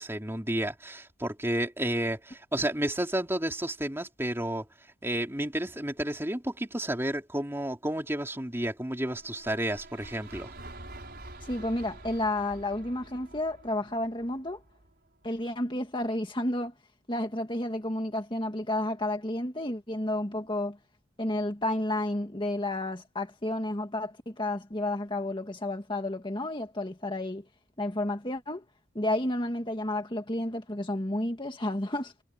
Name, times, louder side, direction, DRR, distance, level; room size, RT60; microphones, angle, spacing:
voice 1, 0.0-4.7 5.0-10.5, right 1 dB, 10° right, 3.1 m, -31 dB
sound 1, 9.1-15.2, right 2 dB, 50° right, 6.1 m, -47 dB
voice 2, 11.4-14.6 15.2-16.7 17.1-20.8 21.2-27.4 27.8-28.6 29.0-32.2, left 1 dB, 25° left, 1.9 m, -31 dB
head